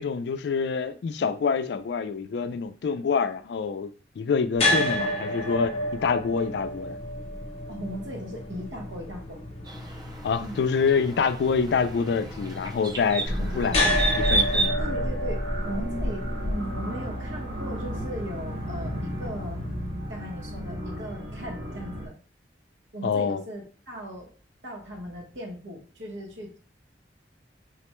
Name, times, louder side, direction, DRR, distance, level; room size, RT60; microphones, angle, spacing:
voice 1, 0.0-7.0 10.2-13.8 14.2-14.8 23.0-23.4, left 5 dB, 60° left, 0.3 m, -26 dB
sound 1, 4.6-20.7, left 1 dB, 35° left, 0.7 m, -32 dB
voice 2, 7.7-9.4 10.4-10.6 14.8-19.7 20.1-22.1 22.9-24.3 24.6-26.6, equal, 85° right, 1.1 m, -38 dB
sound 2, 9.7-14.7, right 2 dB, 20° right, 0.4 m, -31 dB
sound 3, 13.2-22.1, equal, 65° right, 0.8 m, -31 dB
4.1 x 2.1 x 3.0 m
head